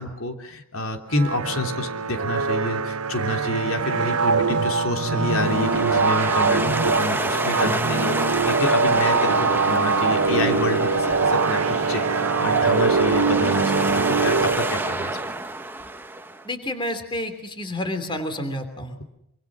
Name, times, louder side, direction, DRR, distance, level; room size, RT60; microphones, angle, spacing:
voice 1, 0.0-11.6 11.9-13.9 14.2-15.2, left 1 dB, 75° left, 4 dB, 3.2 m, -28 dB
sound 1, 1.1-15.2, right 4 dB, 85° right, 1.1 m, -23 dB
sound 2, 5.3-16.5, right 2 dB, 10° right, 1.0 m, -28 dB
voice 2, 16.4-19.0, left 1 dB, 20° left, 8 dB, 3.1 m, -29 dB
26.0 x 25.0 x 6.2 m, 0.79 s
head